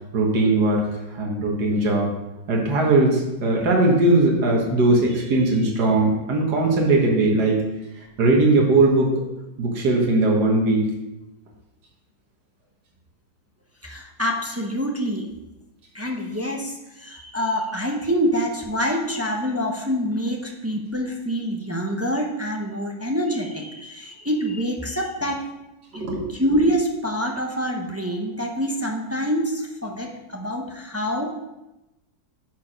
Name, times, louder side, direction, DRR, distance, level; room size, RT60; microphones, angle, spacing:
voice 1, 0.1-0.9 1.1-2.1 2.5-7.6 8.2-9.1 9.6-10.9 25.9-26.3, right 2 dB, 80° right, -1 dB, 1.9 m, -19 dB
voice 2, 13.8-15.3 15.9-25.4 25.9-31.3, equal, 15° right, 1 dB, 0.6 m, -26 dB
10.0 x 4.6 x 5.1 m, 0.98 s
omnidirectional pair, 1.7 m